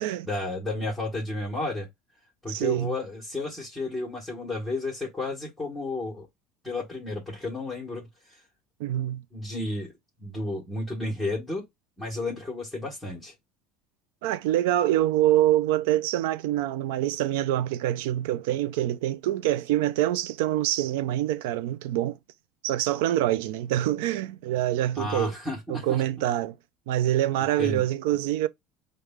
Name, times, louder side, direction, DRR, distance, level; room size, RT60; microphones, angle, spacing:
voice 1, 0.0-1.9 2.4-6.3 6.6-8.4 9.3-9.9 10.2-11.6 12.0-13.3 24.9-26.0 27.6-27.8, left 2 dB, ahead, 1.2 m, -32 dB
voice 2, 2.5-2.9 8.8-9.2 14.2-22.2 22.6-25.3 25.7-26.6 26.9-28.5, right 13 dB, 90° right, 0.3 m, -25 dB
4.8 x 2.2 x 3.4 m
cardioid pair, 145°, 0 cm